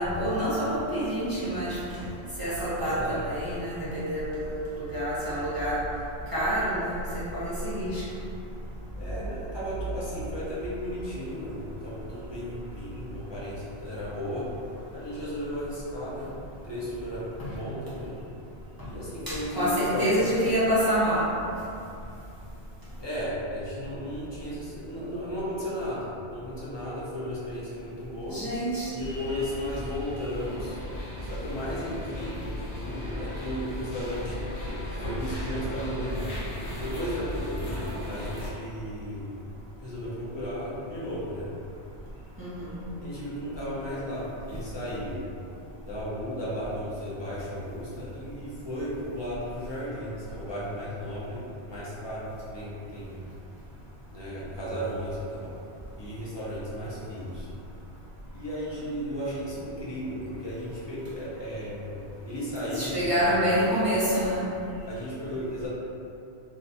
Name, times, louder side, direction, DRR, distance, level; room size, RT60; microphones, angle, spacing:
voice 1, 0.0-2.0 2.4-5.8 6.3-8.0 19.3-21.3 28.3-28.9 42.4-42.7 62.7-64.4, equal, 25° right, -11 dB, 0.7 m, -27 dB
voice 2, 2.8-3.2 9.0-14.5 14.9-16.3 16.6-18.2 18.8-20.4 23.0-28.4 28.9-30.8 31.2-34.4 34.6-36.3 36.8-39.3 39.8-41.5 43.0-45.2 45.8-53.1 54.1-55.5 56.0-57.5 58.3-63.3 63.6-63.7 64.9-65.7, equal, 30° left, -9 dB, 0.6 m, -35 dB
sound 1, 29.0-38.5, left 1 dB, 80° left, 1.0 m, -36 dB
2.5 x 2.3 x 4.0 m, 2.7 s
omnidirectional pair, 1.2 m